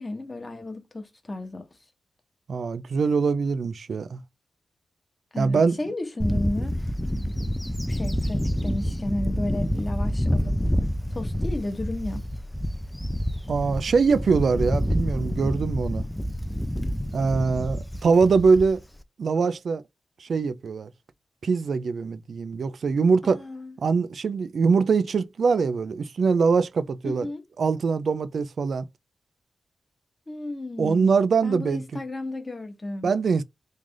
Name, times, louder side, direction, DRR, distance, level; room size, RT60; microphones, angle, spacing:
voice 1, 0.0-1.7 5.3-6.9 7.9-10.5 11.1-12.2 23.2-23.8 27.0-27.4 30.3-31.1 31.4-33.1, left 1 dB, 25° left, 0.9 m, -33 dB
voice 2, 2.5-4.2 5.4-5.8 13.5-16.0 17.1-18.8 19.2-19.8 20.2-20.9 21.4-23.4 23.8-27.3 27.6-28.9 30.8-31.8 33.0-33.4, right 5 dB, 65° right, 0.4 m, -23 dB
Bird / Wind, 6.2-19.0, equal, 5° left, 0.4 m, -28 dB
3.2 x 2.5 x 3.7 m
cardioid pair, 75°, 0 cm